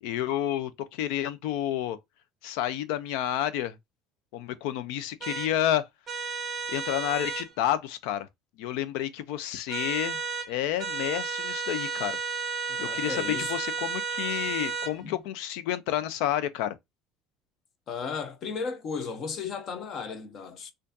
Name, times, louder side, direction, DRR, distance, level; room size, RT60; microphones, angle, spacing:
voice 1, 0.0-2.0 2.4-3.8 4.3-5.9 6.7-8.3 8.6-10.2 10.5-12.2 12.8-16.8, left 11 dB, 75° left, 0.5 m, -30 dB
sound 1, 5.2-5.5 6.1-7.5 9.7-10.5 10.8-14.9, right 5 dB, 25° right, 0.5 m, -32 dB
voice 2, 12.7-13.5 15.0-15.2 17.9-20.7, left 5 dB, 35° left, 0.6 m, -35 dB
4.4 x 2.5 x 2.6 m
cardioid pair, 180°, 0 cm